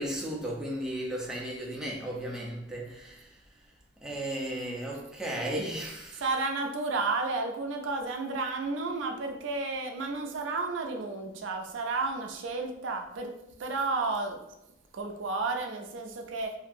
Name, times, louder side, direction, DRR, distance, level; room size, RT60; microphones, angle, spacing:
voice 1, 0.0-3.3 4.0-6.4, right 1 dB, 5° right, -3 dB, 0.6 m, -35 dB
voice 2, 6.2-13.3 13.6-14.4 14.9-16.5, right 3 dB, 80° right, 3 dB, 0.4 m, -32 dB
2.8 x 2.6 x 2.5 m, 0.87 s
head